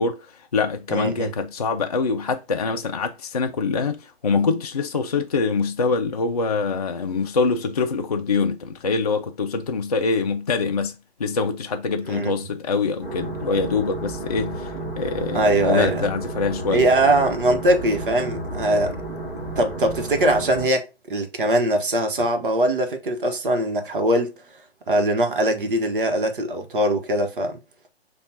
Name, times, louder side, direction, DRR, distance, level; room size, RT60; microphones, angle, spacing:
voice 1, 0.0-16.9, left 4 dB, 40° left, 0.4 m, -24 dB
voice 2, 0.9-1.3 12.1-12.3 15.3-16.1 16.7-19.0 19.6-24.3 24.9-27.6, right 1 dB, 55° right, 1.1 m, -21 dB
sound 1, 13.0-20.7, right 2 dB, 5° right, 1.7 m, -32 dB
6.9 x 2.4 x 2.7 m
figure-of-eight pair, 135°, 32 cm